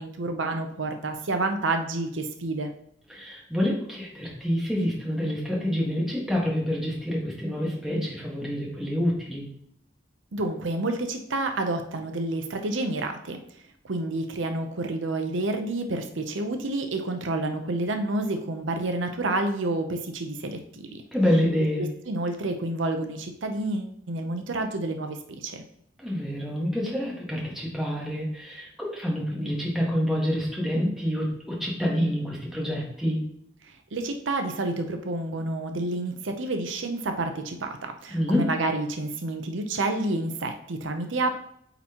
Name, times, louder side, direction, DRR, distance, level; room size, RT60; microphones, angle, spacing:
voice 1, 0.0-2.7 10.3-13.4 13.8-21.0 21.8-25.6 33.6-41.3, right 2 dB, 85° right, 6 dB, 0.7 m, -29 dB
voice 2, 3.1-9.4 21.1-21.8 26.0-33.2 38.1-38.5, equal, ahead, -4 dB, 1.5 m, -27 dB
8.5 x 4.0 x 2.9 m, 0.70 s
head